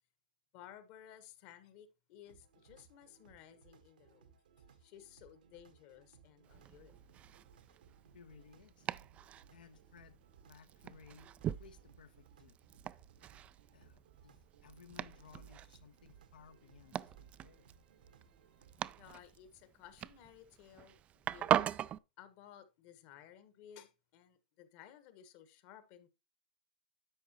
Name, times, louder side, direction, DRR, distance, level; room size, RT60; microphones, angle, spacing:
voice 1, 0.5-4.3 4.7-7.0 19.0-21.7 22.2-26.1, left 10 dB, 45° left, 1.4 m, -57 dB
sound 1, 2.2-19.2, right 6 dB, 75° right, 1.4 m, -64 dB
Domestic sounds home sounds, 6.4-22.0, right 11 dB, 25° right, 0.3 m, -41 dB
voice 2, 8.1-8.9 9.5-11.3 11.6-12.6 13.7-17.7, left 6 dB, 75° left, 1.1 m, -60 dB
10.5 x 7.1 x 2.9 m
hypercardioid pair, 115°, 5 cm